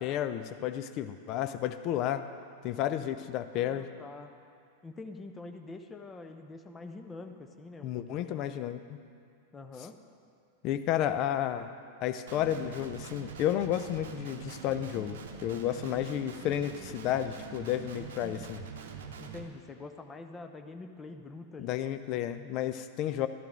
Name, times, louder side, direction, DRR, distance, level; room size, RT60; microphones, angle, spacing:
voice 1, 0.0-2.3 2.6-3.9 7.8-9.0 10.6-11.7 12.0-18.6 21.6-23.3, left 11 dB, 40° left, 10 dB, 0.6 m, -32 dB
voice 2, 3.5-4.3 4.8-8.5 9.5-10.0 19.2-22.0, left 3 dB, 20° left, 6 dB, 0.8 m, -45 dB
Guitar, 12.3-19.4, right 6 dB, 60° right, 0.8 m, -44 dB
13.5 x 12.0 x 3.7 m, 2.3 s
figure-of-eight pair, 90°, 0 cm